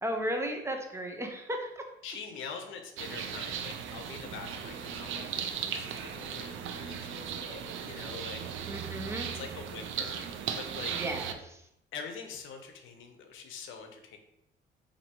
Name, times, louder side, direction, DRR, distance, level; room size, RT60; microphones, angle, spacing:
voice 1, 0.0-1.8 8.7-9.3 10.9-11.6, equal, 15° right, 3 dB, 0.5 m, -35 dB
voice 2, 2.0-8.5 9.3-10.9 11.9-14.2, left 5 dB, 80° left, 5 dB, 0.6 m, -44 dB
sound 1, 3.0-11.3, right 8 dB, 80° right, 0.4 m, -37 dB
4.3 x 2.7 x 2.9 m, 0.79 s
cardioid pair, 90°, 20 cm